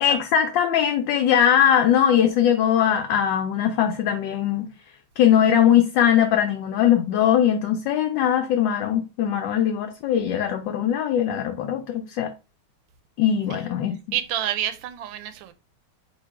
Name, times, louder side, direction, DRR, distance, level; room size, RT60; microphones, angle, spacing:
voice 1, 0.0-4.7 5.2-12.3 13.2-14.0, left 9 dB, 75° left, 1.2 m, -20 dB
voice 2, 14.1-15.5, right 11 dB, 75° right, 1.3 m, -28 dB
3.6 x 2.9 x 4.7 m
omnidirectional pair, 2.2 m